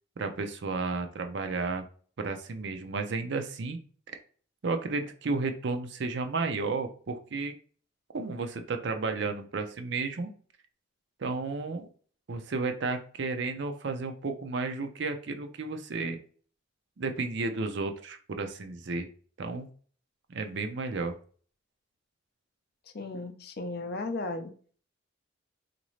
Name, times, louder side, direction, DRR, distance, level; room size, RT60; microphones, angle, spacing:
voice 1, 0.2-1.9 2.2-3.8 4.6-7.5 8.1-10.3 11.2-11.9 12.3-16.2 17.0-19.1 19.4-19.7 20.3-21.2, right 3 dB, 60° right, 7 dB, 0.5 m, -32 dB
voice 2, 22.9-24.5, left 2 dB, 50° left, 7 dB, 0.5 m, -35 dB
4.0 x 2.6 x 3.0 m, 0.43 s
head